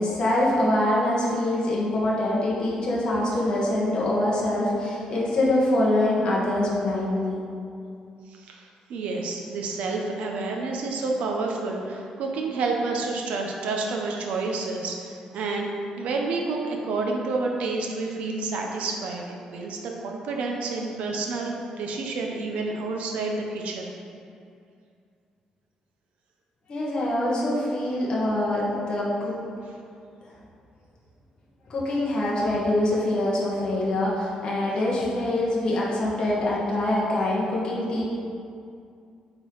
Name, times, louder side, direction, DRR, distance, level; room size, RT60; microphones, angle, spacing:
voice 1, 0.0-7.4 26.7-29.3 31.7-38.0, left 1 dB, 40° left, -6 dB, 1.4 m, -24 dB
voice 2, 8.3-19.8 20.0-23.9, right 3 dB, 75° right, 1 dB, 0.8 m, -29 dB
8.8 x 3.8 x 4.7 m, 2.4 s
cardioid pair, 180°, 2 cm